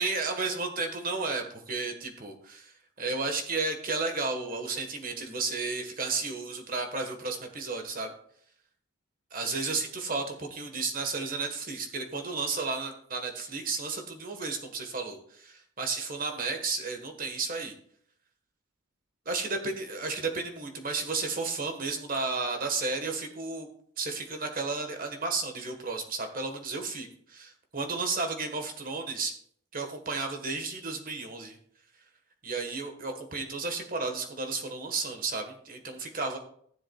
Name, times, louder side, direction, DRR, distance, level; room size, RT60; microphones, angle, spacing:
voice 1, 0.0-8.1 9.3-17.7 19.2-23.7 24.0-29.3 29.7-31.6 32.4-36.4, right 3 dB, 40° right, 4 dB, 1.4 m, -33 dB
15.5 x 7.3 x 2.3 m, 0.63 s
head